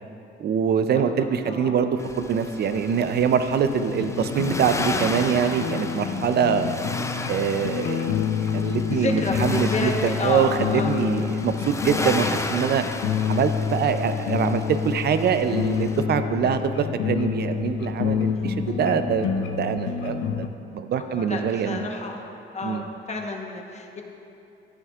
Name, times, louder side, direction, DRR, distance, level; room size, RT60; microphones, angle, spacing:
voice 1, 0.4-6.7 7.3-8.1 8.5-12.8 13.3-20.2 20.7-21.9 22.6-22.8, right 7 dB, 55° right, 10 dB, 0.5 m, -24 dB
voice 2, 1.4-1.8 8.9-11.0 18.3-18.5 21.0-22.2 22.5-24.0, left 3 dB, 35° left, 1 dB, 1.1 m, -30 dB
Accelerating revving vroom, 2.0-16.0, left 2 dB, 15° left, 0.5 m, -34 dB
sound 1, 3.6-20.5, left 7 dB, 85° left, 0.5 m, -28 dB
12.5 x 9.7 x 2.4 m, 2.8 s
cardioid pair, 90°, 20 cm